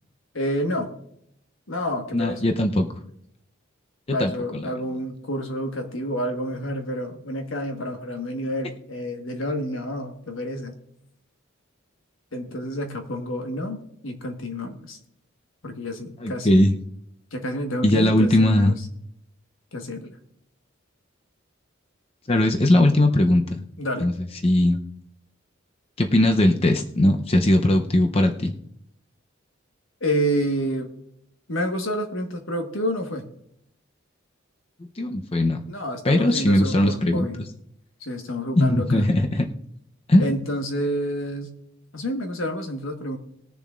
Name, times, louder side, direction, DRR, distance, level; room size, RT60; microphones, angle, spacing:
voice 1, 0.3-0.9 1.7-2.5 4.1-10.8 12.3-15.0 15.6-16.6 17.3-18.7 19.7-20.1 23.8-24.1 30.0-30.9 31.5-33.2 35.7-37.4 38.0-39.1 40.2-41.5 41.9-43.2, equal, 80° left, 5 dB, 1.4 m, -29 dB
voice 2, 2.1-2.9 4.2-4.6 16.2-16.7 17.8-18.8 22.3-23.6 24.0-24.1 24.4-24.8 26.0-28.5 35.0-35.6 36.0-37.3 38.6-39.5 40.1-40.4, left 1 dB, 30° left, 5 dB, 0.6 m, -19 dB
20.5 x 7.0 x 2.4 m, 0.74 s
head